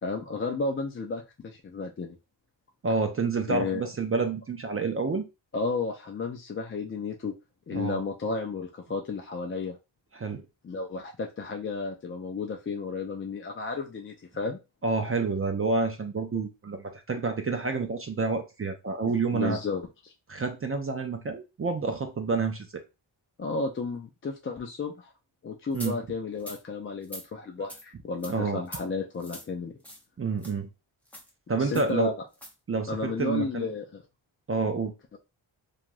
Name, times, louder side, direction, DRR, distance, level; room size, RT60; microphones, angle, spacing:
voice 1, 0.0-2.2 3.5-3.8 5.5-7.3 7.7-9.8 10.6-14.6 19.0-20.1 23.4-25.1 25.4-29.7 31.6-32.1 32.9-34.0 35.1-35.2, left 4 dB, 30° left, 2 dB, 0.4 m, -33 dB
voice 2, 2.8-5.2 7.7-8.0 10.1-10.4 14.8-19.6 20.3-22.8 25.7-26.0 28.3-28.6 30.2-30.7 31.5-32.1 32.7-33.7 34.5-34.9, right 4 dB, 30° right, 6 dB, 0.4 m, -28 dB
sound 1, 25.7-25.9 26.4-26.6 27.0-27.3 27.7-27.8 28.2-28.3 28.7-28.8 29.2-29.5 29.8-30.0 30.4-30.5 31.1-31.3 31.7-31.9 32.3-32.5, equal, 5° left, 0.7 m, -42 dB
2.9 x 2.4 x 2.5 m, 0.26 s
cardioid pair, 80°, 47 cm